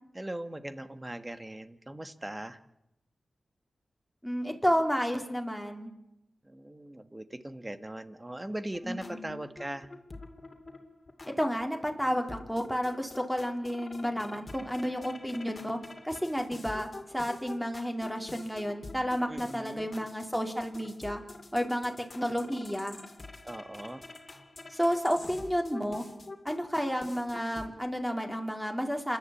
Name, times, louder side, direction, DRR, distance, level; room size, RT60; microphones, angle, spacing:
voice 1, 0.1-2.6 6.4-9.9 19.3-19.9 23.4-24.0, right 1 dB, 20° right, 11 dB, 1.6 m, -40 dB
voice 2, 4.2-5.9 8.8-9.3 11.4-15.8 16.0-16.9 17.1-21.2 21.5-23.0 24.7-26.0 26.4-29.2, equal, ahead, 4 dB, 3.8 m, -31 dB
sound 1, 8.7-27.7, left 2 dB, 40° left, 2.6 m, -47 dB
27.5 x 11.5 x 8.6 m, 0.87 s
cardioid pair, 55°, 0 cm